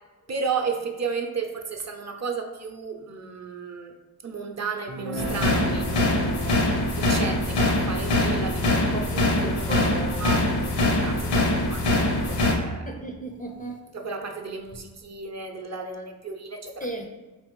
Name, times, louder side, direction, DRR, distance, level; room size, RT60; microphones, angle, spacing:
voice 1, 0.3-3.9 4.2-6.6 7.0-10.6 11.0-12.9 13.9-16.9, right 5 dB, 45° right, 4 dB, 0.5 m, -33 dB
Guitar, 4.9-10.6, equal, 85° right, 0.6 m, -39 dB
sound 1, 5.2-12.5, left 2 dB, 75° left, 0.7 m, -23 dB
voice 2, 9.7-11.4 12.9-13.8 16.8-17.1, right 2 dB, 20° left, 2 dB, 0.4 m, -37 dB
4.1 x 3.3 x 3.0 m, 1.2 s
cardioid pair, 85°, 39 cm